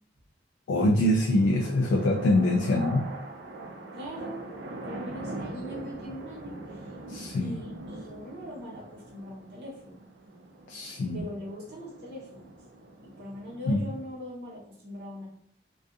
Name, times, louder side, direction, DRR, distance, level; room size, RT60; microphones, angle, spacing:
voice 1, 0.7-3.1 7.1-7.6 10.7-11.2 13.7-13.8, left 1 dB, 85° left, 1 dB, 0.3 m, -24 dB
sound 1, 1.1-14.0, right 2 dB, 80° right, 0.4 m, -42 dB
voice 2, 3.9-4.5 4.8-6.9 7.4-10.0 11.1-12.5 13.0-15.3, equal, 60° right, -7 dB, 0.8 m, -41 dB
2.6 x 2.3 x 2.3 m, 0.65 s
head